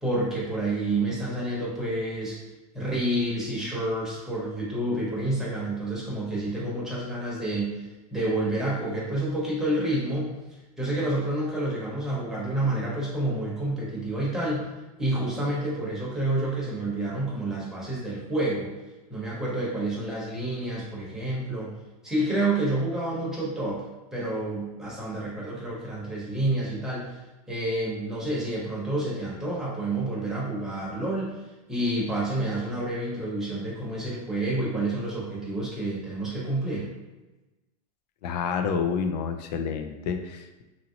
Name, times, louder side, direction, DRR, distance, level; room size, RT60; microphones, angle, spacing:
voice 1, 0.0-2.4 2.7-7.9 8.1-10.3 10.8-14.7 15.0-18.7 19.1-21.7 22.0-23.8 24.1-27.1 27.5-31.3 31.7-36.9, right 1 dB, ahead, -7 dB, 0.8 m, -29 dB
voice 2, 38.2-40.6, left 6 dB, 75° left, 7 dB, 0.5 m, -29 dB
2.8 x 2.8 x 2.7 m, 1.1 s
supercardioid pair, 150°, 21 cm